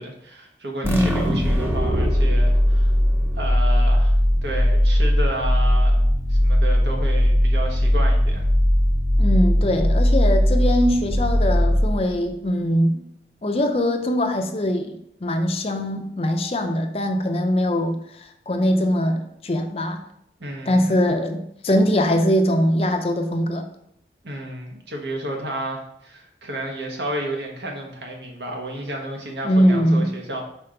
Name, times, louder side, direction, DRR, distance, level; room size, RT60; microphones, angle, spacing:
voice 1, 0.0-3.0 3.3-4.2 4.4-8.5 20.4-21.0 24.2-30.4, right 1 dB, 80° right, 1 dB, 1.3 m, -32 dB
voice 2, 0.8-1.4 9.2-13.0 13.4-20.0 20.7-23.7 29.4-30.2, equal, 35° left, 6 dB, 0.5 m, -22 dB
sound 1, 0.8-12.3, equal, 15° right, 0.6 m, -19 dB
5.7 x 4.4 x 3.8 m, 0.73 s
head